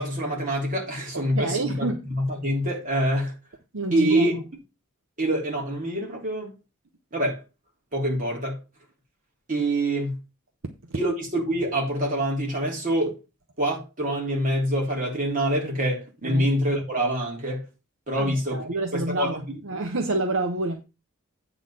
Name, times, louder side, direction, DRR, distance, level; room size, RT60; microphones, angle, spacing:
voice 1, 0.0-3.3 3.9-4.3 5.2-6.5 7.1-7.4 7.9-8.6 9.5-10.2 10.9-13.2 13.6-17.7 18.1-19.4, right 1 dB, 40° right, 3.3 m, -26 dB
voice 2, 1.3-2.0 3.7-4.3 16.2-16.5 18.2-20.8, right 2 dB, 65° right, 0.9 m, -28 dB
8.8 x 4.0 x 6.3 m
head